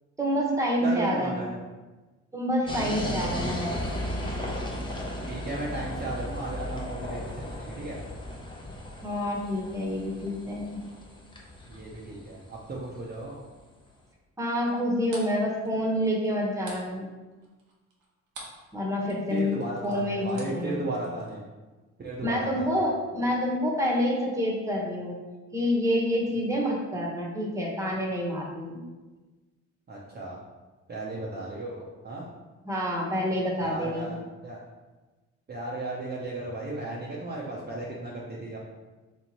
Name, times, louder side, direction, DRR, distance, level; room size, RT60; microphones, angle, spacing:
voice 1, 0.2-1.5 2.3-3.7 9.0-10.8 14.4-17.1 18.7-20.8 22.2-25.2 25.5-28.8 32.6-34.1, equal, 10° right, -2 dB, 1.1 m, -28 dB
voice 2, 0.8-1.6 2.7-3.5 5.3-8.0 11.7-13.4 19.3-21.4 22.0-22.8 29.9-30.4 30.9-32.3 33.6-34.6 35.5-38.6, right 2 dB, 30° right, -5 dB, 0.7 m, -35 dB
sound 1, 2.7-13.4, left 1 dB, 15° left, 0.8 m, -36 dB
sound 2, 14.7-18.7 19.0-21.4, right 3 dB, 90° right, 1.0 m, -47 dB
3.4 x 3.0 x 4.2 m, 1.2 s
cardioid pair, 90°, 30 cm